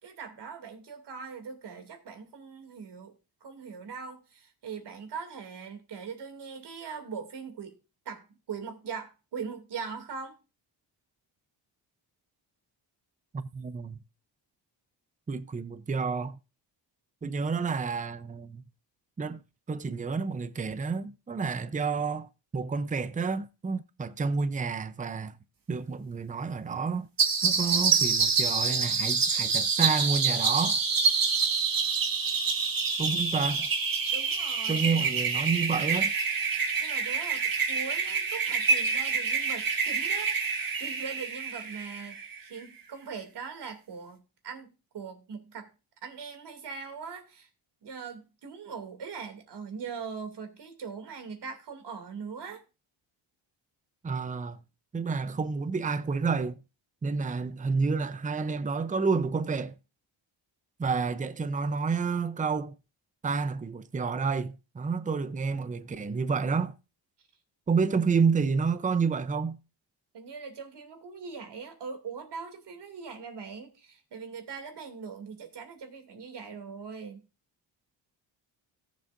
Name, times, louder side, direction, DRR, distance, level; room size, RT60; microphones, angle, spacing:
voice 1, 0.0-3.2 3.4-7.8 8.0-10.4 34.1-35.1 36.5-45.7 46.0-47.5 47.8-52.6 70.1-77.2, right 5 dB, 65° right, 2.6 m, -41 dB
voice 2, 13.3-14.0 15.3-16.4 17.2-18.6 19.2-19.4 19.7-25.4 25.7-27.1 27.4-30.8 33.0-33.7 34.7-36.1 54.0-54.6 54.9-56.6 57.0-59.8 60.8-62.8 63.2-66.8 67.7-69.6, right 5 dB, 20° right, 0.6 m, -29 dB
sound 1, 27.2-42.4, right 5 dB, 50° right, 1.8 m, -27 dB
17.5 x 7.2 x 2.6 m
cardioid pair, 95°, 44 cm